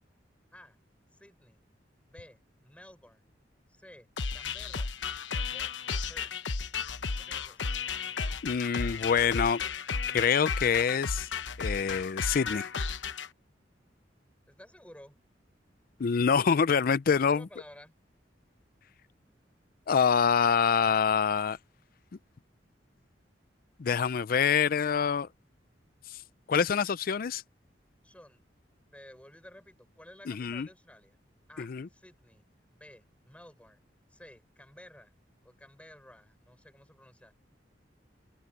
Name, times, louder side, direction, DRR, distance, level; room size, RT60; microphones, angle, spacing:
voice 1, 1.1-1.6 2.0-3.2 3.7-4.9 5.3-5.8 6.1-6.3 7.1-7.6 14.5-15.2 17.1-17.9 28.0-28.4 28.9-31.2 31.5-32.4 32.7-33.8 34.1-35.1 35.4-37.3, left 1 dB, 5° left, 6.5 m, -53 dB
sound 1, 4.2-13.3, left 5 dB, 90° left, 1.0 m, -34 dB
voice 2, 8.4-9.6 10.1-11.3 11.6-12.7 16.0-17.5 19.9-21.6 23.8-25.3 26.1-26.2 26.5-27.4 30.3-30.7 31.6-31.9, left 6 dB, 50° left, 0.4 m, -26 dB
open air
head